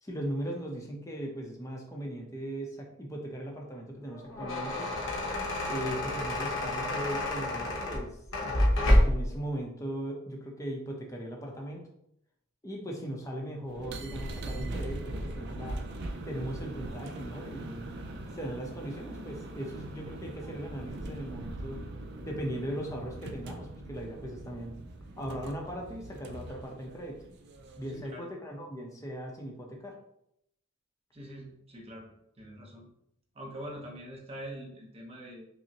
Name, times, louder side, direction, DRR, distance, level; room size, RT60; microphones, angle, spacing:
voice 1, 0.0-4.9 5.7-8.5 9.0-11.9 12.6-15.9 16.3-17.9 18.3-21.8 22.2-24.8 25.2-27.2 27.8-30.0, equal, 15° left, -1 dB, 0.6 m, -38 dB
sound 1, 4.1-9.3, left 1 dB, 65° left, 0.8 m, -28 dB
sound 2, 13.7-28.1, right 1 dB, 50° right, 0.4 m, -41 dB
voice 2, 27.9-28.3 31.1-32.1 32.4-32.9 33.3-35.5, equal, 30° right, -1 dB, 0.8 m, -44 dB
5.2 x 2.1 x 2.8 m, 0.77 s
head